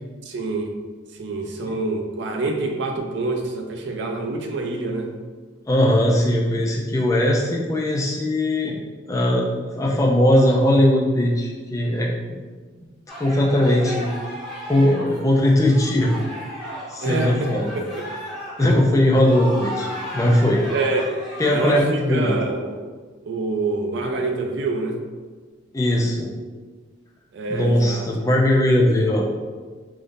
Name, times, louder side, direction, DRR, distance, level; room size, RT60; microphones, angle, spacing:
voice 1, 0.2-0.8 1.2-5.2 17.0-17.9 18.6-18.8 20.7-21.1 21.5-22.8 23.2-25.1 27.3-28.1, right 3 dB, 60° right, 3 dB, 0.4 m, -26 dB
voice 2, 5.7-8.8 9.1-9.5 9.8-12.1 13.2-14.1 14.6-16.2 16.9-17.7 18.6-19.9 20.1-20.6 21.4-22.3 25.7-26.3 27.5-29.2, left 1 dB, 15° left, -2 dB, 0.3 m, -19 dB
sound 1, 13.1-21.8, equal, ahead, 0.7 m, -35 dB
3.6 x 2.5 x 2.6 m, 1.4 s
head